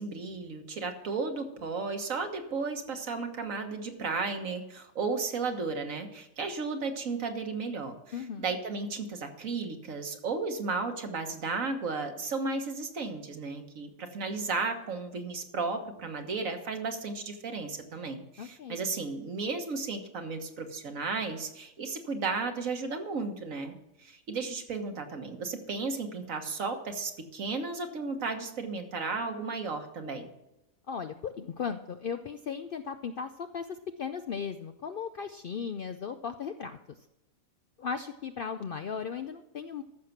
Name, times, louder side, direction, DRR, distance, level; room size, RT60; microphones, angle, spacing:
voice 1, 0.0-23.7 24.0-30.3, right 4 dB, 70° right, 5 dB, 1.7 m, -34 dB
voice 2, 8.1-8.5 18.4-18.8 30.9-37.0 37.8-39.8, left 6 dB, 60° left, 8 dB, 0.6 m, -37 dB
14.0 x 6.6 x 5.9 m, 0.91 s
omnidirectional pair, 1.4 m